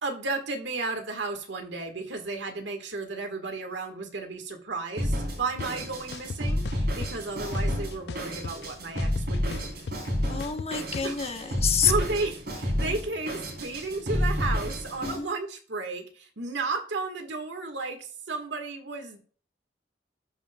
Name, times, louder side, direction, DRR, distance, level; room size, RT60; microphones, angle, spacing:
voice 1, 0.0-9.7 11.0-11.5 11.8-19.2, right 3 dB, 85° right, 5 dB, 1.7 m, -33 dB
Drum kit, 5.0-15.2, equal, 60° right, 3.8 m, -30 dB
sound 1, 5.6-5.7 6.1-7.1 7.5-8.7 9.0-11.1, left 4 dB, 65° left, 0.4 m, -37 dB
voice 2, 10.3-11.9 15.0-15.3, left 7 dB, 35° left, 6 dB, 1.0 m, -28 dB
13.5 x 5.4 x 2.3 m, 0.42 s
head